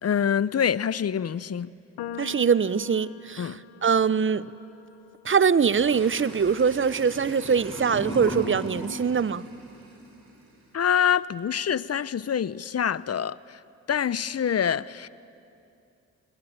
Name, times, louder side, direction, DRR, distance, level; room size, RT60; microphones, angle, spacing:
voice 1, 0.0-1.7 3.4-3.6 10.7-13.6 13.9-15.1, left 8 dB, 45° left, 0.8 m, -26 dB
sound 1, 2.0-8.3, left 5 dB, 85° left, 1.1 m, -45 dB
voice 2, 2.2-3.5 3.8-4.5 5.2-9.4, right 6 dB, 35° right, 0.8 m, -23 dB
sound 2, 5.7-11.1, right 2 dB, 80° right, 7.0 m, -45 dB
sound 3, 7.1-10.1, equal, 10° left, 7.7 m, -36 dB
28.5 x 20.5 x 8.9 m
supercardioid pair, 45°, 35 cm